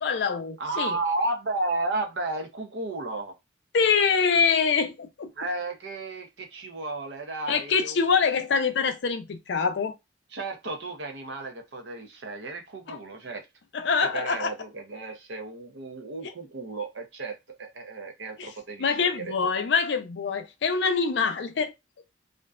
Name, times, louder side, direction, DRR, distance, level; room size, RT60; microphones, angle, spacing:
voice 1, 0.0-1.0 3.7-5.3 7.5-9.9 12.9-13.0 13.7-14.5 18.4-18.5 18.8-21.7, left 5 dB, 70° left, 0.4 m, -25 dB
voice 2, 0.6-3.3 5.4-8.0 10.3-13.4 14.1-19.5, right 2 dB, 75° right, 0.6 m, -33 dB
2.5 x 2.2 x 2.3 m
head